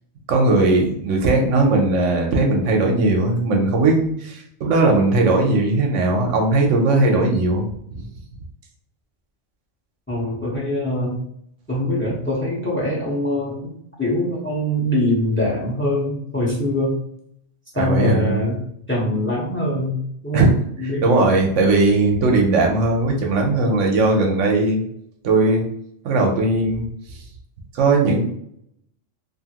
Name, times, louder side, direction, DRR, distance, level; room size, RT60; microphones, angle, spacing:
voice 1, 0.3-8.1 17.7-18.4 20.3-20.5 21.0-24.8 25.2-25.7 26.0-26.9 27.7-28.3, right 2 dB, 80° right, 2 dB, 1.0 m, -18 dB
voice 2, 10.1-11.2 11.7-13.7 14.0-17.0 17.8-18.6 18.9-21.3, left 1 dB, 10° left, -5 dB, 0.7 m, -23 dB
2.8 x 2.5 x 2.8 m, 0.69 s
omnidirectional pair, 1.3 m